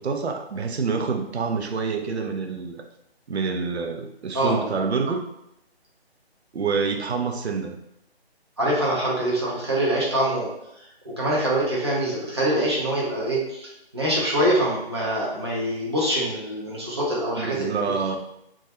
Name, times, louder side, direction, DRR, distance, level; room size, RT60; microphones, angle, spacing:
voice 1, 0.0-2.8 3.3-5.2 6.5-7.7 17.4-18.2, right 5 dB, 85° right, 4 dB, 0.5 m, -27 dB
voice 2, 8.6-10.5 11.0-17.7, right 1 dB, 25° right, -6 dB, 0.5 m, -24 dB
2.2 x 2.2 x 2.8 m, 0.81 s
figure-of-eight pair, 150°, 32 cm